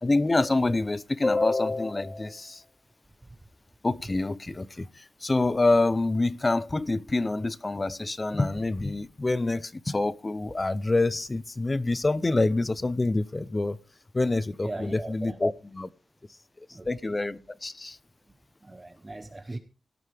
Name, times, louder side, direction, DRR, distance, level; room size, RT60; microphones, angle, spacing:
voice 1, 0.0-2.6 3.8-13.8 14.1-15.9 16.9-18.0, left 2 dB, 20° left, 0.6 m, -26 dB
voice 2, 14.6-15.4 16.7-17.2 18.6-19.6, right 2 dB, 15° right, 0.9 m, -39 dB
17.0 x 13.0 x 3.4 m
wide cardioid pair, 175°, 0 cm